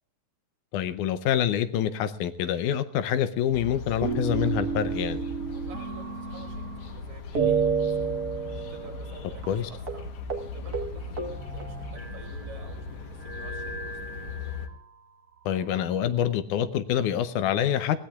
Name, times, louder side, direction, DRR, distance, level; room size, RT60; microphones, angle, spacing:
voice 1, 0.7-5.2 9.5-9.7 15.5-18.1, left 9 dB, 80° left, 12 dB, 2.2 m, -26 dB
sound 1, 3.5-14.7, left 4 dB, 60° left, 2.0 m, -39 dB
sound 2, 4.0-7.0 7.4-9.2 9.4-9.6 9.9-10.0 10.3-10.5 10.7-12.5 13.2-14.8 15.5-16.4, right 5 dB, 40° right, 1.4 m, -31 dB
voice 2, 5.5-10.1 10.5-14.3, right 3 dB, 75° right, 1 dB, 5.9 m, -50 dB
21.5 x 17.0 x 2.4 m, 0.66 s
omnidirectional pair, 3.6 m